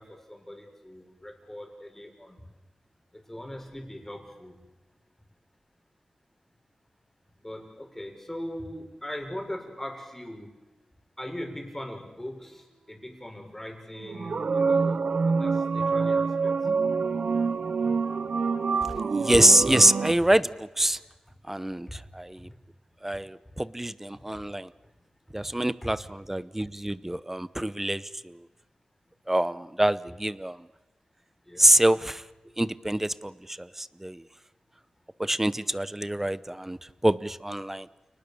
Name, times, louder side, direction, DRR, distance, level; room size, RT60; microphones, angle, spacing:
voice 1, 0.0-2.4 3.1-4.6 7.4-10.6 11.2-15.0 15.3-16.5 21.9-22.0 24.1-24.2 25.8-25.9 31.5-31.7, left 1 dB, 15° left, 2 dB, 6.5 m, -40 dB
sound 1, 14.0-20.1, right 4 dB, 70° right, 0.9 m, -26 dB
voice 2, 19.1-21.0 21.5-22.5 23.0-24.7 25.3-28.4 29.3-30.6 31.6-32.2 32.6-34.2 35.2-37.9, right 1 dB, 15° right, 16 dB, 0.9 m, -25 dB
29.5 x 19.5 x 7.0 m, 1.1 s
wide cardioid pair, 80°, 2 cm